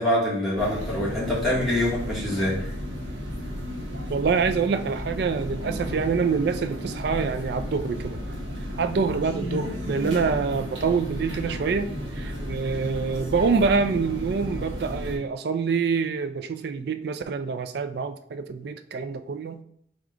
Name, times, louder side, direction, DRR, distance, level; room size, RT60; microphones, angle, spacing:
voice 1, 0.0-2.7 7.1-7.2, left 1 dB, ahead, -8 dB, 1.2 m, -25 dB
sound 1, 0.6-15.2, equal, 80° right, 1.0 m, -33 dB
voice 2, 4.1-8.2 8.8-19.6, right 5 dB, 55° right, 9 dB, 0.3 m, -26 dB
4.8 x 2.4 x 3.7 m, 0.69 s
head